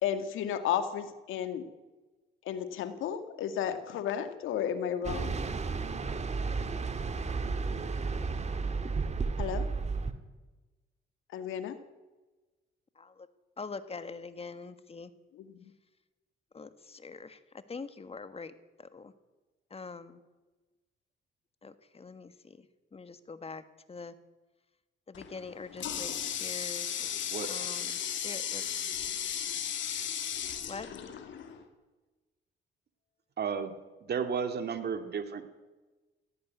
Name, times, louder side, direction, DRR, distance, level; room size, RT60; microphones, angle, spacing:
voice 1, 0.0-1.7 2.5-5.4 9.4-9.7 11.3-11.8 15.3-15.6, left 9 dB, 85° left, 9 dB, 2.1 m, -33 dB
sound 1, 5.0-10.1, right 4 dB, 35° right, 2.0 m, -33 dB
voice 2, 13.0-13.3 13.6-15.1 16.5-19.1 19.7-20.2 21.6-22.7 22.9-24.1 25.1-27.1 27.5-28.6 30.7-30.9, left 4 dB, 30° left, 11 dB, 1.8 m, -44 dB
Water tap faucet, 25.1-31.6, left 9 dB, 70° left, 2.8 m, -35 dB
voice 3, 27.3-27.7 33.4-33.7 34.0-35.4, right 6 dB, 55° right, 8 dB, 2.4 m, -33 dB
17.0 x 16.5 x 9.5 m, 1.2 s
cardioid pair, 90°, 20 cm